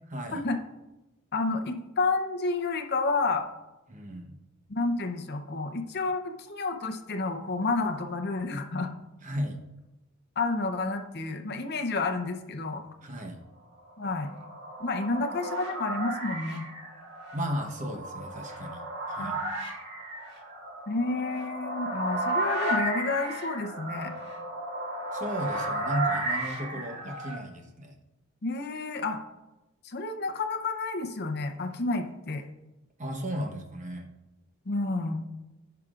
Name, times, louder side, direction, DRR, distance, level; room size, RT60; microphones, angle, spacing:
voice 1, 0.1-0.5 3.9-4.4 9.2-9.6 13.0-13.4 17.3-19.4 25.1-27.9 33.0-34.1, equal, 35° right, 3 dB, 1.0 m, -35 dB
voice 2, 1.3-3.4 4.7-8.9 10.4-12.8 14.0-14.3 14.8-16.6 19.2-19.3 20.9-24.1 28.4-29.2 29.8-32.4 34.7-35.3, left 3 dB, 45° left, 5 dB, 0.7 m, -30 dB
sound 1, 14.0-27.4, right 2 dB, 50° right, 1.8 m, -34 dB
15.5 x 5.8 x 2.5 m, 1.0 s
head